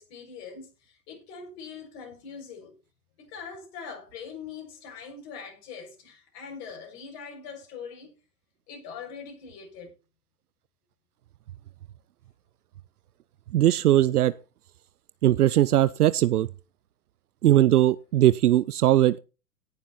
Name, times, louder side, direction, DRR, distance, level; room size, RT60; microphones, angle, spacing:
voice 1, 0.0-2.7 3.2-8.1 8.7-9.9, left 6 dB, 45° left, 6.8 m, -42 dB
voice 2, 13.5-14.3 15.2-16.5 17.4-19.2, right 13 dB, 70° right, 0.6 m, -20 dB
17.5 x 7.2 x 4.3 m
hypercardioid pair, 115°, 47 cm